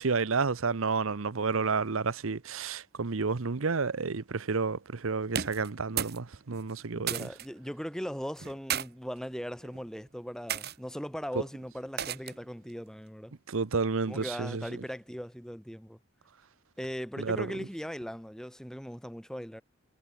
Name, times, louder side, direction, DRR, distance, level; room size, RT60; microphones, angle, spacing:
voice 1, 0.0-7.3 13.5-14.6 17.2-17.5, right 4 dB, 70° right, 0.8 m, -30 dB
sound 1, 5.3-6.2 6.5-7.5 8.4-8.9 9.6-9.9 10.5-10.8 12.0-12.5, right 9 dB, 45° right, 1.3 m, -34 dB
voice 2, 6.9-13.3 14.1-16.0 16.8-19.6, equal, 5° left, 4.9 m, -39 dB
head